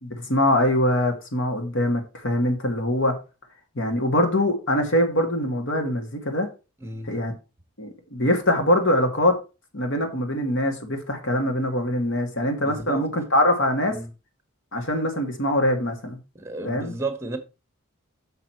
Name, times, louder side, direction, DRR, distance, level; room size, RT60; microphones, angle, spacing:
voice 1, 0.0-3.1 3.8-6.5 7.0-7.3 7.8-9.4 9.7-14.0 14.7-16.2 16.6-16.9, left 1 dB, 60° left, 1.8 m, -23 dB
voice 2, 12.6-13.0 13.9-14.1 16.3-17.4, right 2 dB, 15° right, 1.3 m, -32 dB
6.6 x 5.9 x 4.5 m
head